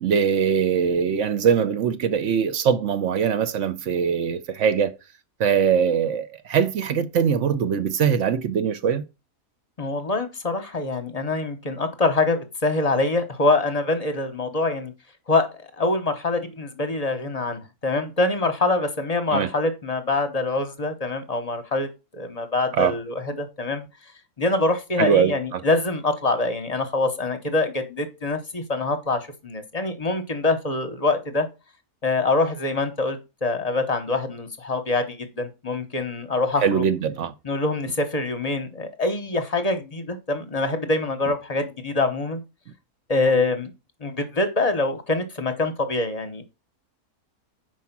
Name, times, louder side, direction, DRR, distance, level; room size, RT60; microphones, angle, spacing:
voice 1, 0.0-4.9 5.4-9.0 19.3-19.5 22.7-22.9 25.0-25.6 36.6-37.3, right 7 dB, 60° right, 0.9 m, -22 dB
voice 2, 9.8-14.9 15.3-21.9 22.1-23.9 24.4-31.5 32.0-36.8 37.4-42.4 43.1-43.7 44.0-46.4, left 2 dB, 30° left, 0.8 m, -25 dB
5.3 x 4.7 x 5.9 m
omnidirectional pair, 1.6 m